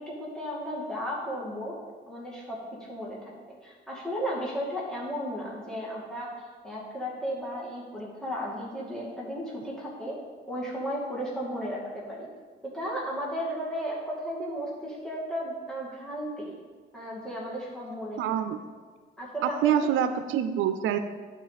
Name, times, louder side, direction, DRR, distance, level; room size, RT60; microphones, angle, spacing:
voice 1, 0.0-1.7 2.1-2.6 2.9-3.3 3.6-10.1 10.5-12.3 12.7-16.5 16.9-18.2 19.2-19.9 20.3-20.4, equal, 5° left, -6 dB, 2.1 m, -34 dB
voice 2, 18.2-18.6 19.4-21.0, right 9 dB, 80° right, 9 dB, 0.5 m, -26 dB
11.5 x 4.5 x 4.0 m, 1.5 s
cardioid pair, 90°, 20 cm